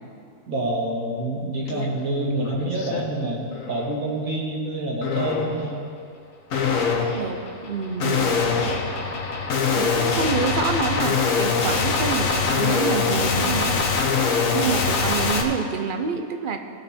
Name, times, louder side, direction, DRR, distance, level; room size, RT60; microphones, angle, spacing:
voice 1, 0.5-5.8, right 1 dB, 70° right, -2 dB, 2.1 m, -27 dB
sound 1, 1.7-1.9 2.3-3.0 3.5-3.9 5.0-5.6 6.5-15.4, left 5 dB, 70° left, 1.3 m, -23 dB
voice 2, 6.8-8.4 9.7-13.9 14.5-16.6, right 5 dB, 50° right, 6 dB, 0.7 m, -28 dB
17.0 x 6.6 x 4.3 m, 2.6 s
omnidirectional pair, 1.5 m